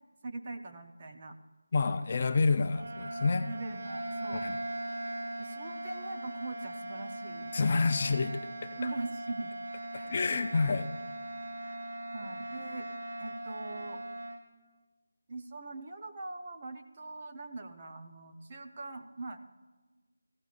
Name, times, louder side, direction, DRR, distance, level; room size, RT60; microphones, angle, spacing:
voice 1, 0.2-1.4 2.7-2.9 3.4-4.5 5.4-7.5 8.8-9.5 9.9-10.1 11.6-11.8 12.1-12.9 13.2-14.0 15.3-19.4, right 2 dB, 25° right, 4 dB, 0.6 m, -42 dB
voice 2, 1.7-3.5 4.4-4.6 7.5-8.7 10.1-10.9, left 4 dB, 30° left, 8 dB, 0.4 m, -28 dB
sound 1, 2.6-14.4, right 1 dB, 70° right, 2.4 m, -40 dB
16.0 x 14.5 x 2.5 m, 1.3 s
figure-of-eight pair, 175°, 0 cm